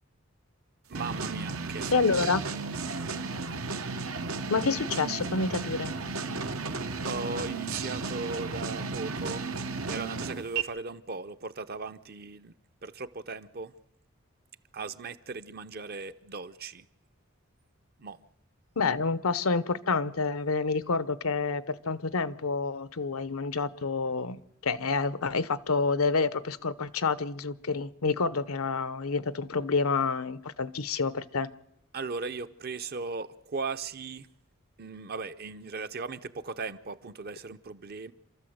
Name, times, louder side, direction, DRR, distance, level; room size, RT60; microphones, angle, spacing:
voice 1, 0.9-1.9 2.3-2.4 7.0-9.5 9.8-12.5 12.8-13.7 14.7-16.9 18.0-18.2 31.9-34.3 34.8-38.1, right 4 dB, 45° right, 0.7 m, -37 dB
sound 1, 0.9-10.6, right 4 dB, 85° right, 1.3 m, -34 dB
voice 2, 1.9-2.4 4.5-5.9 18.8-31.5, left 4 dB, 85° left, 0.9 m, -28 dB
28.0 x 13.5 x 7.9 m
head